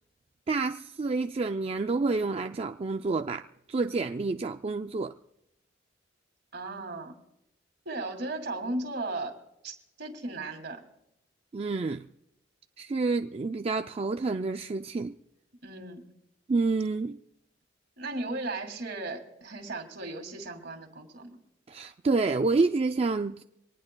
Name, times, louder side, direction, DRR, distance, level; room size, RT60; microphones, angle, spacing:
voice 1, 0.5-5.1 11.5-12.1 12.8-15.2 16.5-17.2 21.7-23.4, right 3 dB, 35° right, 0.4 m, -28 dB
voice 2, 6.5-7.1 7.9-9.3 9.6-10.8 15.6-16.0 18.0-21.4, right 2 dB, 65° right, 2.5 m, -36 dB
24.0 x 19.5 x 2.3 m
head